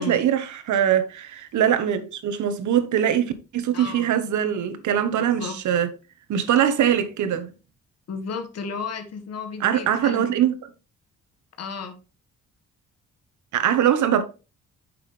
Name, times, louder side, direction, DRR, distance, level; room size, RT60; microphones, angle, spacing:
voice 1, 0.0-5.9 6.3-7.5 9.6-10.5 13.5-14.2, right 9 dB, 70° right, 1.4 m, -22 dB
voice 2, 3.7-4.1 4.7-4.8 5.1-5.6 8.1-10.3 11.6-12.0, left 5 dB, 55° left, 1.7 m, -33 dB
9.1 x 6.7 x 3.4 m
cardioid pair, 90°, 30 cm